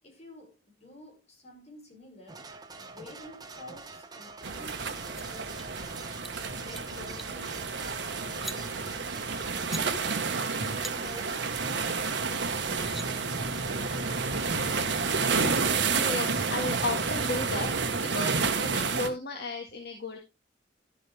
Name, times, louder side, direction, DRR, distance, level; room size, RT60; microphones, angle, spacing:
voice 1, 0.0-2.4 2.8-5.6 6.5-10.2 10.5-12.2, left 2 dB, 35° left, 5.8 m, -50 dB
sound 1, 2.3-17.9, right 3 dB, 20° right, 1.3 m, -45 dB
sound 2, 4.4-19.1, right 4 dB, 80° right, 1.5 m, -30 dB
sound 3, 5.1-5.2 5.5-5.7 6.1-6.3 6.6-6.8 7.2-7.4 8.3-8.6 9.5-9.8 10.8-10.9 12.3-12.4 12.6-13.1, right 1 dB, ahead, 0.6 m, -41 dB
voice 2, 15.9-17.7 18.1-20.2, left 2 dB, 60° left, 1.8 m, -34 dB
12.5 x 7.8 x 3.4 m
head